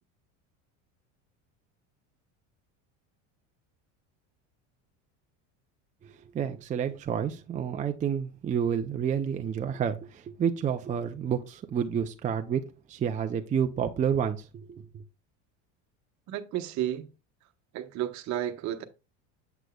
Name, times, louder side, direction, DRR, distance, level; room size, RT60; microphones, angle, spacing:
voice 1, 6.3-14.8, right 8 dB, 20° right, 0.5 m, -29 dB
voice 2, 16.3-17.1 17.7-18.8, right 12 dB, 50° right, 1.1 m, -32 dB
8.0 x 7.9 x 2.3 m
supercardioid pair, 125°, 37 cm